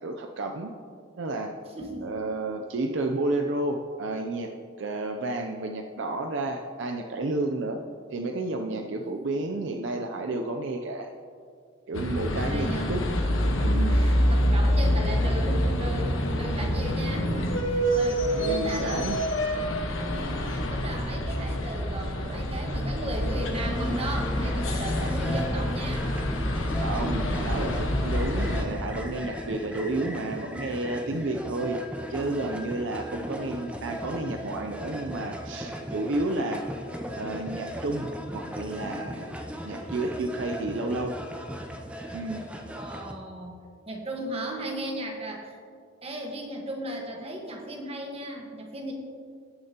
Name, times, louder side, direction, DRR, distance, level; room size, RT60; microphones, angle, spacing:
voice 1, 0.0-0.7 1.2-1.5 2.0-4.5 4.8-7.8 8.1-11.1 11.9-13.0 13.6-14.0 18.4-19.3 26.8-31.8 32.1-36.8 37.1-39.3 39.6-41.2 42.1-42.5, right 2 dB, 65° right, 4 dB, 0.5 m, -31 dB
voice 2, 1.7-2.1 8.7-9.0 12.3-12.9 13.7-19.1 20.1-26.1 42.7-43.6 43.9-45.6 46.0-48.9, right 1 dB, 30° right, 0 dB, 1.3 m, -36 dB
sound 1, 11.9-28.6, equal, 80° left, 1.1 m, -26 dB
sound 2, 23.5-43.1, equal, 5° right, 0.5 m, -37 dB
17.5 x 6.6 x 2.9 m, 2.2 s
head